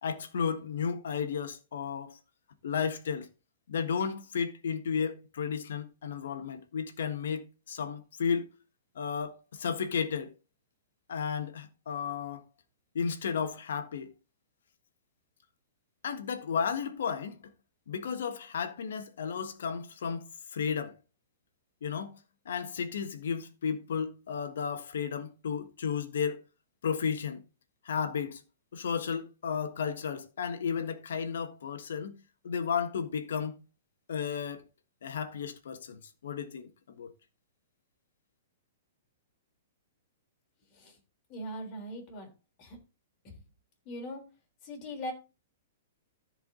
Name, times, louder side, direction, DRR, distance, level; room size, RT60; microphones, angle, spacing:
voice 1, 0.0-2.2 2.6-3.3 3.7-8.5 8.9-10.3 11.1-12.4 12.9-14.1 16.0-17.5 17.9-21.0 21.8-22.2 22.4-26.4 26.8-27.4 27.8-28.4 28.7-32.2 32.4-33.6 34.1-34.6 35.0-37.1, left 6 dB, 80° left, 1.5 m, -33 dB
voice 2, 41.3-42.3 42.6-42.8 43.2-43.3 43.9-44.3 44.6-45.1, equal, 30° left, 3.7 m, -40 dB
14.0 x 5.0 x 3.9 m
hypercardioid pair, 155°, 0 cm